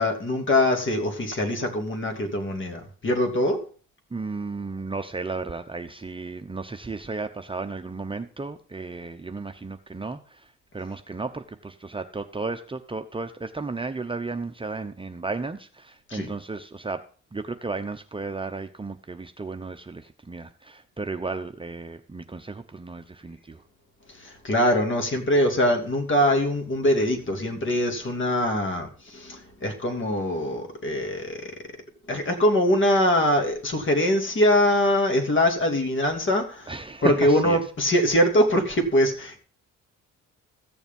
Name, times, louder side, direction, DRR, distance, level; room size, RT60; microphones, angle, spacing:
voice 1, 0.0-3.6 16.1-16.3 24.1-31.5 32.1-36.7 37.0-39.4, left 1 dB, 40° left, 4 dB, 2.9 m, -23 dB
voice 2, 4.1-17.0 17.3-23.6 36.7-37.6, right 3 dB, 15° right, 6 dB, 0.8 m, -34 dB
14.5 x 7.0 x 5.4 m, 0.41 s
cardioid pair, 90°, 30 cm